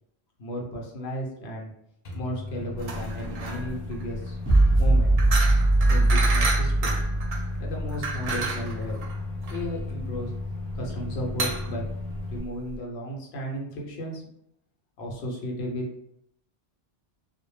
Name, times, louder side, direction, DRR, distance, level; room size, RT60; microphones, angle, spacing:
voice 1, 0.4-1.7 2.1-4.4 4.8-5.1 5.9-6.9 7.6-9.0 9.5-10.3 10.7-11.8 12.3-14.2 15.0-15.8, equal, 85° left, -1 dB, 0.9 m, -34 dB
Microwave oven, 2.0-12.4, left 2 dB, 55° left, 0.5 m, -35 dB
sound 1, 2.8-12.8, right 3 dB, 60° right, 0.6 m, -32 dB
sound 2, 4.5-7.9, right 2 dB, 15° right, 0.7 m, -21 dB
2.1 x 2.0 x 3.1 m, 0.73 s
omnidirectional pair, 1.1 m